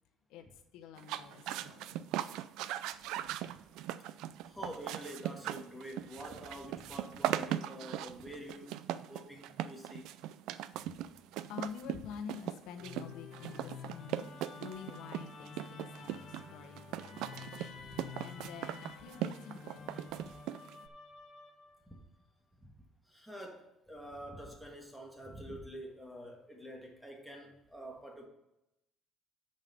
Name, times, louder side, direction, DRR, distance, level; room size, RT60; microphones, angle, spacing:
voice 1, 0.3-2.0 10.7-20.0, left 7 dB, 90° left, 7 dB, 0.9 m, -49 dB
sound 1, 1.0-20.9, right 12 dB, 85° right, 0.4 m, -39 dB
voice 2, 4.4-8.8 9.1-10.1 17.8-17.9 21.9-22.0 22.6-28.3, equal, ahead, 1 dB, 1.5 m, -47 dB
Musical instrument, 12.8-22.0, left 5 dB, 45° left, 0.8 m, -50 dB
6.8 x 5.6 x 6.5 m, 0.87 s
cardioid pair, 160°, 0 cm